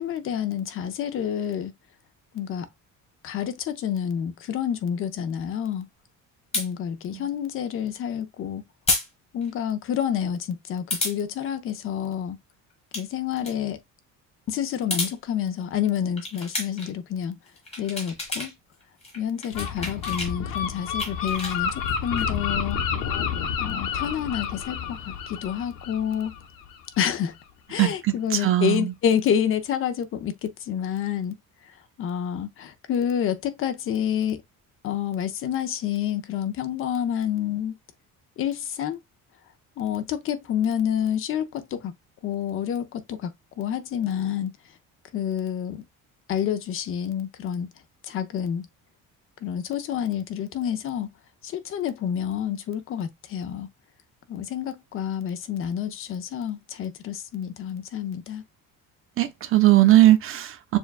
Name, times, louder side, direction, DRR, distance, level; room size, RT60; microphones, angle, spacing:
voice 1, 0.0-1.7 2.3-2.7 3.2-5.9 6.5-8.6 9.3-12.4 12.9-13.8 14.5-17.4 17.8-18.5 19.1-22.8 23.6-26.3 27.0-27.3 27.7-31.4 32.0-34.4 34.8-37.7 38.4-39.0 39.8-41.9 42.2-43.3 43.6-44.5 45.1-45.9 46.3-47.7 48.1-48.6 49.4-51.1 51.4-53.7 54.3-58.4, left 9 dB, 40° left, 0.6 m, -28 dB
sound 1, 6.5-6.7 8.9-9.1 9.4-9.5 10.9-11.2 12.7-13.0 13.4-13.5 14.7-15.1 16.2-16.9 17.5-18.5 18.8-20.3 20.7-22.2, left 2 dB, 20° left, 1.7 m, -30 dB
Gull seagull, 19.5-27.0, left 7 dB, 90° left, 1.0 m, -30 dB
voice 2, 27.8-28.9 59.2-60.8, right 14 dB, 40° right, 0.7 m, -19 dB
6.9 x 2.4 x 2.4 m
cardioid pair, 175°, 33 cm